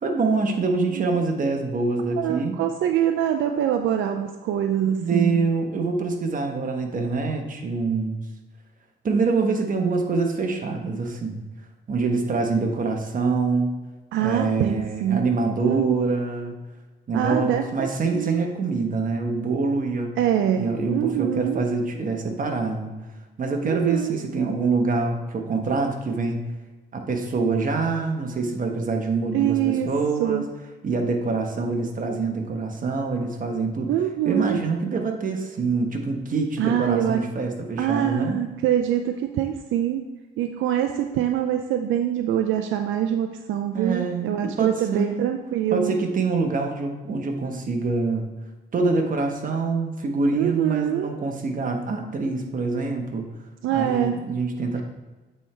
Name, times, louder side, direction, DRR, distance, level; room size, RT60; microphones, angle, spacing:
voice 1, 0.0-2.6 5.0-8.2 9.0-11.4 11.9-13.7 14.2-16.6 17.1-20.2 20.5-22.9 23.4-26.4 26.9-30.4 30.8-33.9 34.2-38.4 43.7-45.3 45.7-48.3 48.7-53.3 53.7-54.8, right 3 dB, 45° right, 3 dB, 1.2 m, -25 dB
voice 2, 2.2-5.4 14.1-15.2 15.5-15.9 17.1-18.4 20.2-20.7 20.9-21.6 23.6-24.2 29.3-29.9 30.2-30.4 33.9-34.6 36.6-37.2 37.8-40.0 40.4-45.9 50.3-51.1 53.6-54.2, right 10 dB, 80° right, 6 dB, 0.4 m, -24 dB
8.0 x 4.4 x 3.3 m, 1.2 s
cardioid pair, 90°, 20 cm